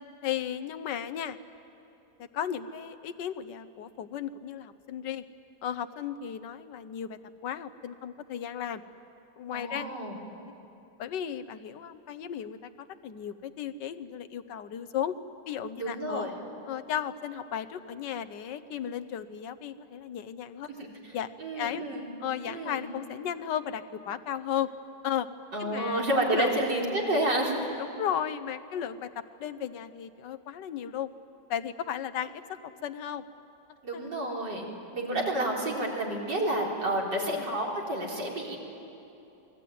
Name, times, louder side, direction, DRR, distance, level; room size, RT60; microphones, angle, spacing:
voice 1, 0.2-1.4 2.2-5.2 5.6-8.8 9.4-9.9 11.0-15.1 15.5-16.3 16.7-20.8 21.1-21.8 22.2-24.7 25.0-25.3 25.6-26.0 26.3-26.5 27.8-31.1 31.5-33.2 33.9-34.1 37.2-37.6, left 9 dB, 90° left, 12 dB, 1.6 m, -35 dB
voice 2, 9.5-10.2 15.8-16.3 20.8-21.1 21.4-22.0 22.5-22.8 25.5-27.6 33.8-34.7 34.9-38.6, right 1 dB, 90° right, -2 dB, 4.7 m, -30 dB
28.0 x 20.5 x 9.4 m, 2.9 s
omnidirectional pair, 1.8 m